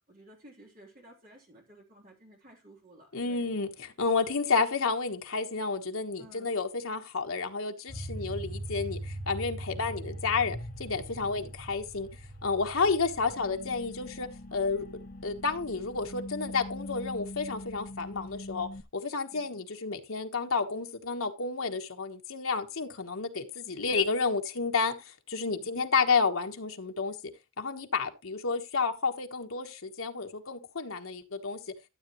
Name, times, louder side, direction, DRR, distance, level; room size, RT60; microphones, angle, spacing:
voice 1, 0.1-3.5 4.4-4.5 6.2-6.6 11.2-11.6 12.8-12.9 14.5-14.6 19.3-19.5 25.5-25.8, right 1 dB, 40° right, 3.6 m, -55 dB
voice 2, 3.1-12.1 12.4-14.9 15.2-27.2 27.6-31.6, left 4 dB, 75° left, 1.3 m, -31 dB
sound 1, 7.9-18.8, equal, 40° left, 1.2 m, -41 dB
13.0 x 7.9 x 3.1 m
head